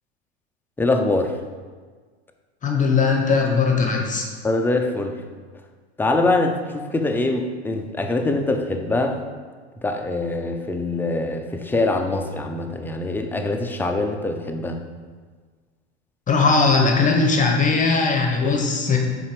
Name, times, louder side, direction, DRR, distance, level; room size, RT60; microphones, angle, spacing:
voice 1, 0.8-1.4 4.4-5.2 6.0-9.2 9.8-14.8, left 2 dB, 5° left, 4 dB, 0.5 m, -23 dB
voice 2, 2.6-4.2 16.3-19.0, left 4 dB, 20° left, 1 dB, 1.0 m, -19 dB
5.6 x 4.3 x 4.9 m, 1.5 s
hypercardioid pair, 100°, 35 cm